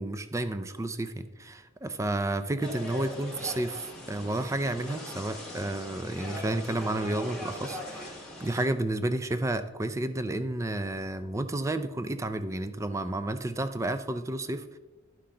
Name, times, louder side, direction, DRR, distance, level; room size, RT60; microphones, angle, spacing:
voice 1, 0.0-14.8, right 1 dB, 15° right, 10 dB, 0.4 m, -31 dB
sound 1, 2.6-8.7, left 1 dB, 5° left, 1.7 m, -40 dB
11.5 x 5.8 x 3.8 m, 1.2 s
head